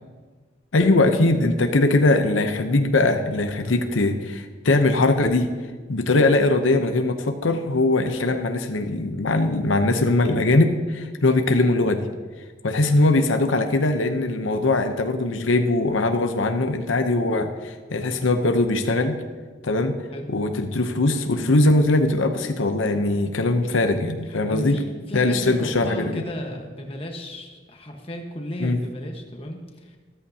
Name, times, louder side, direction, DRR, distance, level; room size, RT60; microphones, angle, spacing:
voice 1, 0.7-5.5 5.9-12.1 12.6-19.2 19.6-20.0 20.3-24.8 25.1-26.2 28.6-28.8, left 2 dB, 85° left, 7 dB, 0.8 m, -21 dB
voice 2, 20.1-20.4 24.3-30.0, equal, 30° left, 2 dB, 1.3 m, -34 dB
14.0 x 13.5 x 2.8 m, 1.4 s
head